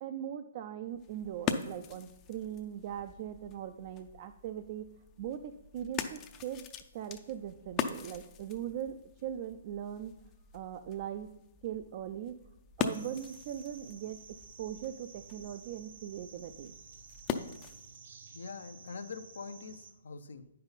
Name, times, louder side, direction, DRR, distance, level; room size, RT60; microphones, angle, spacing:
voice 1, 0.0-4.9 5.2-6.6 6.9-10.2 10.5-11.3 11.6-12.4 12.8-14.2 14.6-16.7, right 10 dB, 45° right, 8 dB, 0.4 m, -40 dB
sound 1, 0.9-18.0, left 7 dB, 25° left, 0.5 m, -42 dB
sound 2, 12.9-19.9, right 4 dB, 65° right, 0.9 m, -53 dB
voice 2, 18.3-20.5, left 4 dB, 75° left, 10 dB, 0.6 m, -44 dB
8.8 x 5.5 x 4.0 m, 0.89 s
hypercardioid pair, 145°, 0 cm